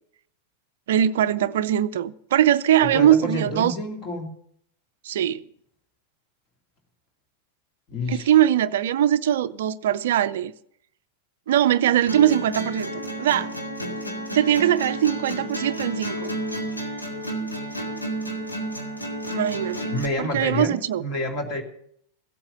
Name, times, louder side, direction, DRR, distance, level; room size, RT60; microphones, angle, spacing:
voice 1, 0.9-3.8 5.0-5.4 8.1-10.5 11.5-13.5 14.3-16.3 19.3-19.9 20.2-21.0, right 11 dB, 60° right, 0.4 m, -21 dB
voice 2, 2.8-4.3 7.9-8.3 19.9-21.6, left 1 dB, 35° left, 2.7 m, -28 dB
sound 1, 12.1-20.1, right 1 dB, 85° left, 2.3 m, -31 dB
15.5 x 8.7 x 6.7 m
figure-of-eight pair, 90°, 0 cm